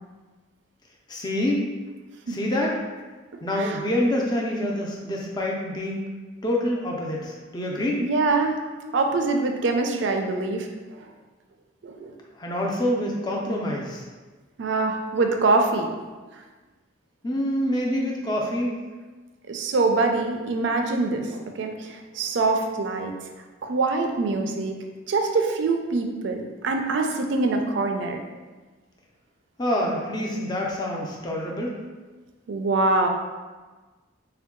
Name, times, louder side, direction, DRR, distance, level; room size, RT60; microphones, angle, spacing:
voice 1, 1.1-1.6 2.3-2.8 3.4-6.0 6.4-8.1 12.4-14.0 17.2-18.8 29.6-31.8, left 1 dB, 20° left, -2 dB, 0.5 m, -26 dB
voice 2, 8.0-8.6 8.9-10.7 11.0-11.1 11.8-12.1 14.6-15.9 19.5-23.1 23.6-24.8 25.1-28.2 32.5-33.1, right 3 dB, 60° right, 4 dB, 0.4 m, -24 dB
3.7 x 2.3 x 3.6 m, 1.3 s
head